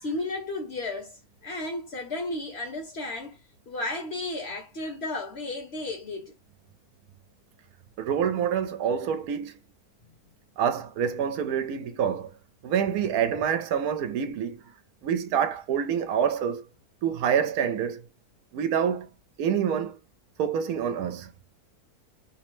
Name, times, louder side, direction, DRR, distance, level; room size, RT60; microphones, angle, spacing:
voice 1, 0.0-3.4 3.7-6.3, left 2 dB, 50° left, 0.9 m, -33 dB
voice 2, 8.0-9.5 10.6-12.3 12.6-14.6 15.0-16.6 17.0-18.1 18.5-19.1 19.4-20.0 20.4-21.3, right 8 dB, 75° right, 1.0 m, -27 dB
3.1 x 2.0 x 3.0 m
omnidirectional pair, 1.6 m